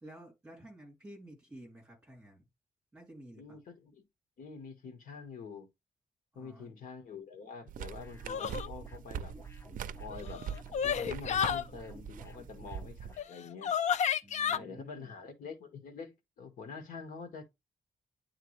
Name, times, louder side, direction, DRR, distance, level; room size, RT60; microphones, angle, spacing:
voice 1, 0.0-2.5 2.9-3.6 6.3-6.7 14.2-15.2, right 1 dB, 10° right, 3.2 m, -52 dB
voice 2, 3.4-4.0 4.4-5.7 6.3-9.3 9.9-10.4 10.8-13.7 14.5-17.4, left 5 dB, 75° left, 1.6 m, -46 dB
sound 1, 7.7-13.2, right 8 dB, 70° right, 0.4 m, -43 dB
sound 2, 8.0-13.3, equal, 20° left, 0.9 m, -54 dB
sound 3, 8.3-8.7 10.1-11.6 13.2-13.3 13.6-14.6, left 8 dB, 55° left, 0.4 m, -31 dB
9.6 x 3.7 x 3.2 m
wide cardioid pair, 175°, 14 cm